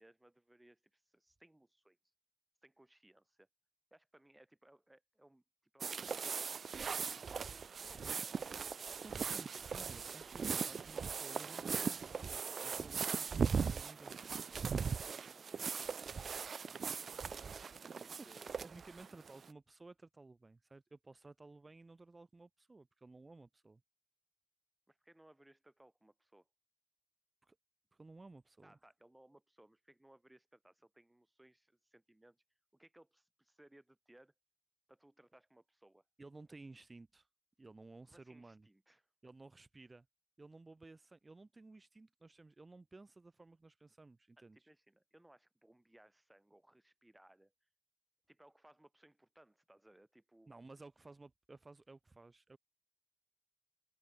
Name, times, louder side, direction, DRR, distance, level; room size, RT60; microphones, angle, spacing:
voice 1, 0.0-2.0 2.6-3.5 3.9-5.4 5.7-6.5 7.0-8.4 13.3-13.4 13.8-16.1 17.2-18.6 24.9-26.5 28.6-32.4 32.7-34.3 34.9-36.0 38.1-39.0 44.4-47.5 48.3-50.5, right 1 dB, 20° right, 3.6 m, -65 dB
sound 1, 5.8-19.5, right 6 dB, 85° right, 0.4 m, -39 dB
voice 2, 9.0-14.1 18.1-18.3 18.6-23.8 27.4-27.6 27.9-28.7 36.2-37.3 37.6-38.7 39.2-40.1 40.4-44.7 50.5-52.6, right 3 dB, 45° right, 2.6 m, -56 dB
open air
cardioid pair, 45°, 0 cm